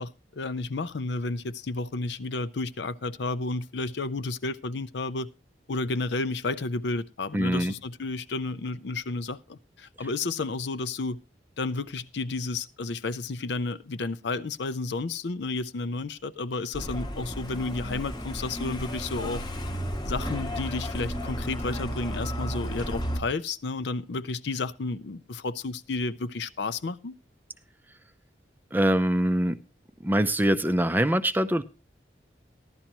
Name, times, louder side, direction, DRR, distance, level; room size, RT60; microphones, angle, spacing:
voice 1, 0.0-5.3 5.7-11.2 11.6-19.4 20.0-27.1, left 3 dB, 70° left, 0.6 m, -32 dB
voice 2, 7.3-7.7 28.7-29.6 30.0-31.6, right 1 dB, 10° right, 0.5 m, -23 dB
Truck, 16.7-23.2, equal, 25° left, 0.9 m, -33 dB
14.5 x 11.5 x 3.0 m
head